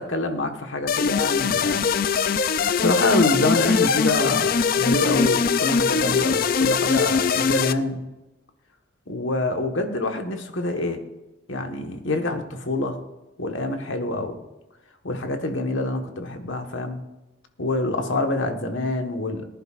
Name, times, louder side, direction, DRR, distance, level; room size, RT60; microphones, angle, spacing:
voice 1, 0.0-1.8 2.2-8.0 9.1-11.0 11.5-13.0 13.4-14.4 15.0-17.0 17.6-19.4, left 2 dB, 85° left, 5 dB, 1.4 m, -26 dB
sound 1, 0.9-7.7, left 5 dB, 50° left, 0.4 m, -21 dB
19.0 x 11.0 x 2.5 m, 1.0 s
head